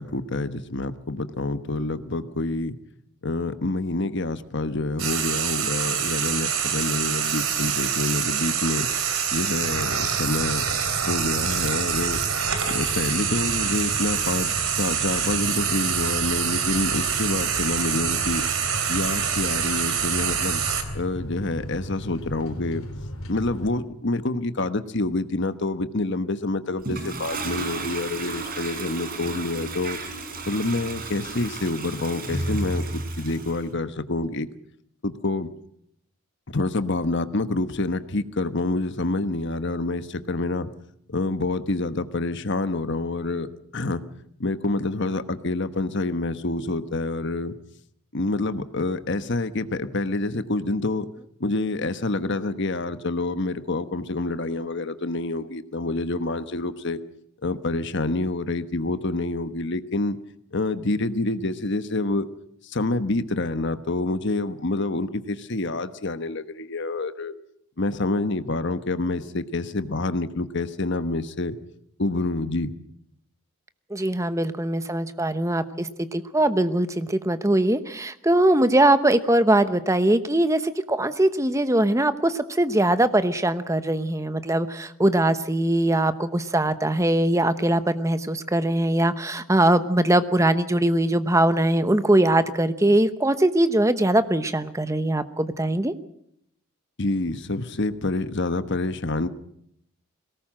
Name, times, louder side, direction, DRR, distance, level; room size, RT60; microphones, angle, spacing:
voice 1, 0.0-2.8 3.2-8.9 9.3-10.7 11.1-12.2 12.7-18.5 18.9-20.6 20.9-22.9 23.3-30.0 30.5-34.5 35.0-35.5 36.5-40.7 41.1-43.5 43.7-44.0 44.4-47.6 48.1-51.1 51.4-57.0 57.4-60.2 60.5-62.3 62.6-67.3 67.8-71.6 72.0-72.7 97.0-99.3, left 2 dB, 55° left, 11 dB, 1.2 m, -27 dB
Frying (food), 5.0-20.8, right 7 dB, 75° right, 3.3 m, -26 dB
sound 1, 9.6-23.8, equal, 75° left, 3.1 m, -36 dB
Toilet flush, 26.8-33.6, right 2 dB, 45° right, 3.9 m, -33 dB
voice 2, 73.9-95.9, right 1 dB, 15° right, 11 dB, 0.9 m, -21 dB
22.5 x 18.5 x 7.6 m, 0.72 s
head